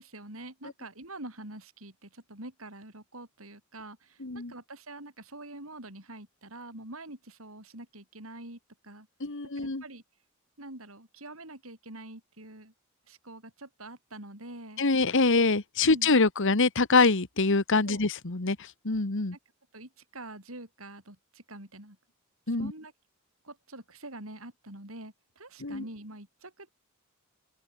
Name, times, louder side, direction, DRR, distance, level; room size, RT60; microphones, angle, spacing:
voice 1, 0.0-9.1 9.6-10.0 10.6-12.7 13.1-14.8 15.8-16.2 17.8-18.0 19.3-19.4 19.7-22.0 22.5-22.9 23.4-26.7, right 2 dB, 70° right, 7.8 m, -45 dB
voice 2, 4.2-4.5 9.2-9.8 14.8-19.4 22.5-22.7 25.6-25.8, left 3 dB, 60° left, 1.6 m, -25 dB
open air
head